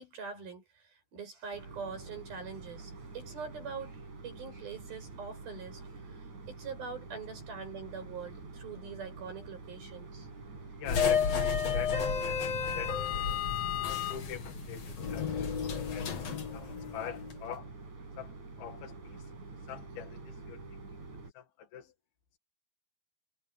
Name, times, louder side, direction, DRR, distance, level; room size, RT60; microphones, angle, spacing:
voice 1, 0.0-10.3, right 5 dB, 80° right, 9.8 m, -44 dB
sound 1, 1.5-21.3, right 3 dB, 50° right, 6.7 m, -47 dB
voice 2, 10.8-13.0 13.6-16.3 16.5-17.8 18.2-21.0 21.3-21.9, left 9 dB, 90° left, 4.0 m, -45 dB
sound 2, 10.9-17.4, left 7 dB, 50° left, 3.3 m, -32 dB
omnidirectional pair, 4.2 m